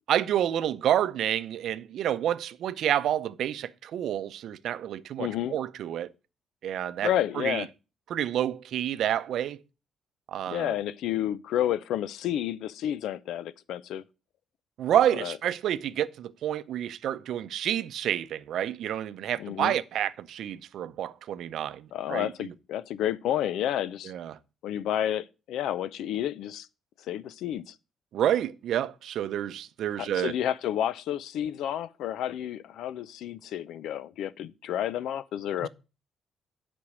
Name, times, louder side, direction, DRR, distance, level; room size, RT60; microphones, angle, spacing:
voice 1, 0.1-6.1 6.6-7.1 7.4-7.6 8.1-9.6 10.3-10.7 14.8-22.3 24.0-24.4 28.1-30.3 35.6-35.7, right 11 dB, 75° right, 0.6 m, -29 dB
voice 2, 5.2-5.6 7.0-7.7 10.5-14.0 15.2-15.4 19.4-19.8 21.9-24.1 24.6-26.7 27.1-27.7 30.0-35.7, left 11 dB, 80° left, 0.5 m, -30 dB
8.6 x 5.3 x 6.2 m
cardioid pair, 90°, 0 cm